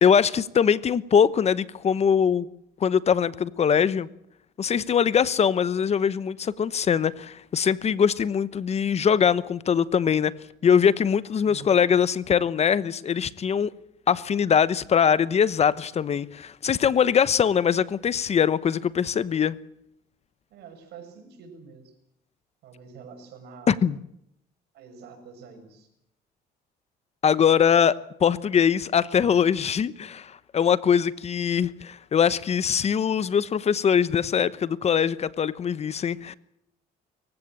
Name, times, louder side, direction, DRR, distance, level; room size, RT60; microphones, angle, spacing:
voice 1, 0.0-2.5 2.8-4.1 4.6-10.3 10.6-13.7 14.1-19.5 23.7-24.0 27.2-36.3, left 7 dB, 40° left, 1.0 m, -22 dB
voice 2, 11.4-11.8 20.5-21.9 22.6-23.7 24.7-25.9, right 5 dB, 75° right, 6.7 m, -46 dB
25.0 x 16.0 x 8.9 m
cardioid pair, 110°, 17 cm